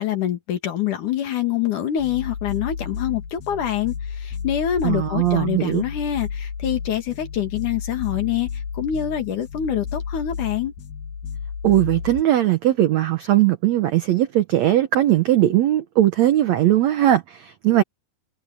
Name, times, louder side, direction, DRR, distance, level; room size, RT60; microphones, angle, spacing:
voice 1, 0.0-3.9 4.2-8.5 8.7-10.7, left 10 dB, 60° left, 3.2 m, -25 dB
sound 1, 2.0-12.2, left 6 dB, 80° left, 4.1 m, -32 dB
voice 2, 4.8-5.8 11.6-17.8, right 13 dB, 75° right, 1.6 m, -19 dB
omnidirectional pair, 4.4 m